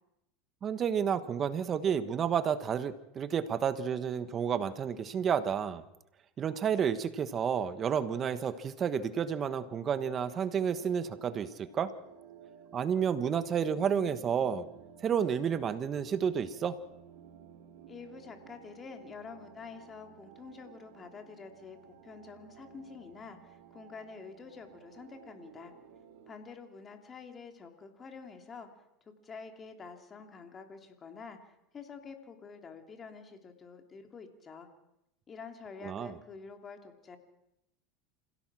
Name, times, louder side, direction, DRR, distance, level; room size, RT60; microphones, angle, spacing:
voice 1, 0.6-5.8 6.4-11.9 12.7-14.7 15.0-16.8 35.8-36.1, right 7 dB, 30° right, 12 dB, 1.3 m, -31 dB
sound 1, 10.0-26.4, right 8 dB, 75° right, 2.7 m, -55 dB
voice 2, 17.9-25.7 26.3-28.7 29.2-31.4 31.7-34.7 35.3-37.2, left 5 dB, 25° left, 5 dB, 3.0 m, -48 dB
27.0 x 17.0 x 6.2 m, 0.84 s
supercardioid pair, 120°, 0 cm